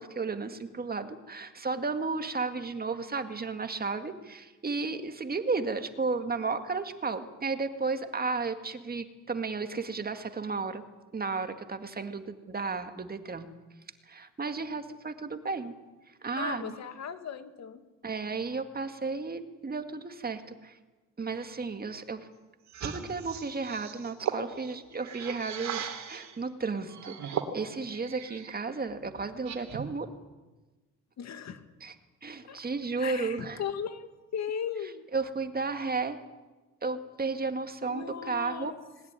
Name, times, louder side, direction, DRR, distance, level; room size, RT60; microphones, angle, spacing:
voice 1, 0.0-10.8 11.1-13.5 14.1-15.7 16.2-16.8 18.0-20.8 21.2-22.3 22.8-30.1 31.8-32.0 32.2-33.6 35.1-36.2 36.8-38.7, right 4 dB, 30° right, 8 dB, 2.0 m, -33 dB
voice 2, 16.4-17.8 31.2-31.6 32.5-32.6 33.0-35.1 37.8-38.8, left 7 dB, 65° left, 9 dB, 2.1 m, -37 dB
sound 1, 22.7-26.4 26.9-28.6 28.9-30.0, right 7 dB, 65° right, 3.1 m, -38 dB
20.5 x 19.5 x 9.8 m, 1.2 s
cardioid pair, 90°, 30 cm